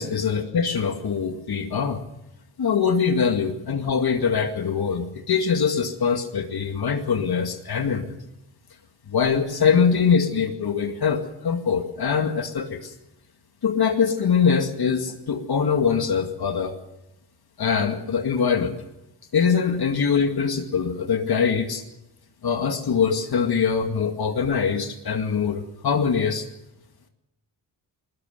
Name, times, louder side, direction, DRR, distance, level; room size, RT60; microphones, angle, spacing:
voice 1, 0.0-2.0 2.6-8.2 9.1-12.9 13.6-16.8 17.6-18.8 19.3-21.8 22.4-26.5, left 6 dB, 60° left, 5 dB, 2.2 m, -23 dB
21.5 x 20.5 x 6.8 m, 0.90 s
wide cardioid pair, 105°, 41 cm